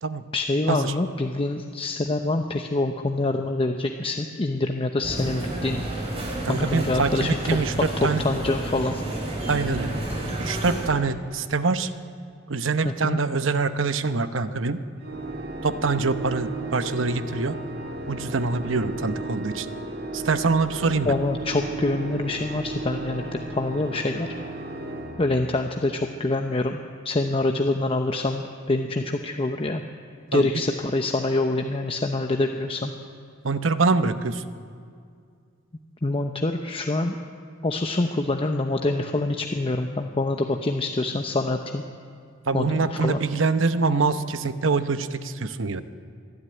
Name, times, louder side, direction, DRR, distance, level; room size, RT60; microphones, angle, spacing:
voice 1, 0.3-5.8 6.5-7.3 8.0-9.0 12.8-13.2 21.0-24.3 25.2-26.8 27.0-29.8 30.3-32.9 36.0-37.2 37.6-41.8 42.5-43.2, left 2 dB, 30° left, 5 dB, 0.8 m, -25 dB
sound 1, 5.0-10.9, right 1 dB, 30° right, 5.1 m, -30 dB
voice 2, 6.4-7.7 8.0-8.2 9.5-9.9 10.4-11.9 12.5-14.8 15.6-17.6 18.1-19.7 20.1-21.1 30.3-30.5 33.4-34.4 42.5-45.8, right 4 dB, 75° right, 11 dB, 0.9 m, -24 dB
Organ, 15.0-25.9, right 2 dB, 55° right, 1.9 m, -35 dB
26.5 x 11.0 x 9.6 m, 2.3 s
head